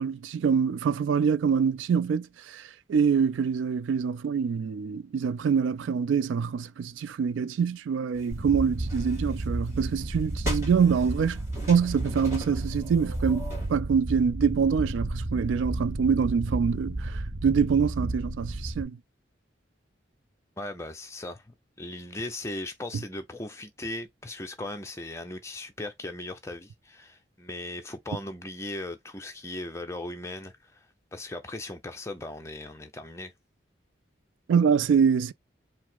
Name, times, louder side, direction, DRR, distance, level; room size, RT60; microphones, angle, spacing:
voice 1, 0.0-11.4 11.7-13.4 13.7-19.0 34.5-35.3, right 6 dB, 85° right, 0.3 m, -25 dB
sound 1, 8.1-13.7, equal, 15° right, 2.0 m, -39 dB
sound 2, 8.3-18.8, right 2 dB, 40° right, 0.6 m, -33 dB
voice 2, 20.6-30.9 31.1-33.3, left 2 dB, 15° left, 0.6 m, -38 dB
4.7 x 2.1 x 3.9 m
head